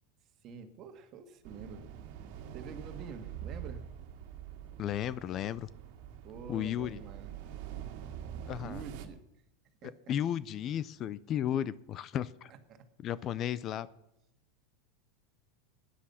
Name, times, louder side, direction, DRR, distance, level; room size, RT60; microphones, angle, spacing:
voice 1, 0.4-1.9 2.5-3.8 6.2-7.6 8.6-9.2 9.8-10.1 12.7-12.9, right 6 dB, 40° right, 8 dB, 1.9 m, -47 dB
sound 1, 1.4-9.1, right 9 dB, 60° right, 1.9 m, -45 dB
voice 2, 4.8-5.7 6.5-7.0 8.5-8.8 9.8-12.5 13.0-13.9, left 10 dB, 35° left, 18 dB, 0.5 m, -34 dB
17.0 x 10.0 x 5.7 m, 0.81 s
supercardioid pair, 135°, 0 cm